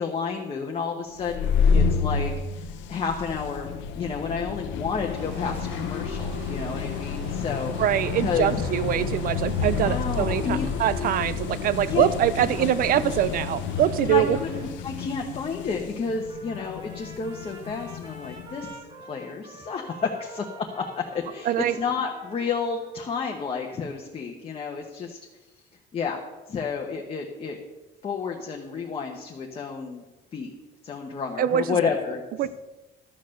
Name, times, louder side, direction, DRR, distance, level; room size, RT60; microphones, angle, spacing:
voice 1, 0.0-7.7 8.2-8.5 9.8-10.7 11.8-12.1 12.5-12.7 14.0-18.8 19.1-25.2 25.9-26.2 26.5-27.6 28.0-30.0 30.3-30.5 30.8-32.2, left 5 dB, 30° left, 1 dB, 1.0 m, -31 dB
sound 1, 1.2-18.6, left 5 dB, 85° left, 0.9 m, -29 dB
sound 2, 5.1-14.7, right 2 dB, 85° right, 4.3 m, -44 dB
voice 2, 7.8-14.4 21.5-21.8 31.4-31.8 32.4-32.5, right 11 dB, 50° right, 17 dB, 0.6 m, -24 dB
Trumpet, 16.3-23.2, right 2 dB, 25° right, 1.9 m, -47 dB
12.5 x 6.7 x 6.4 m, 1.1 s
cardioid pair, 155°, 19 cm